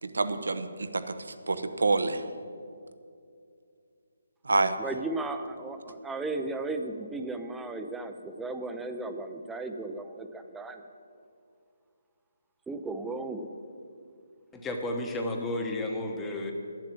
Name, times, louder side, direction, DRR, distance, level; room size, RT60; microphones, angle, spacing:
voice 1, 0.0-2.2 4.4-4.8, right 3 dB, 85° right, 11 dB, 0.8 m, -28 dB
voice 2, 4.8-10.8 12.7-13.5, right 2 dB, 5° right, 7 dB, 0.5 m, -35 dB
voice 3, 14.5-16.5, left 1 dB, 10° left, 2 dB, 1.0 m, -32 dB
10.5 x 7.6 x 7.6 m, 2.4 s
hypercardioid pair, 160°, 0 cm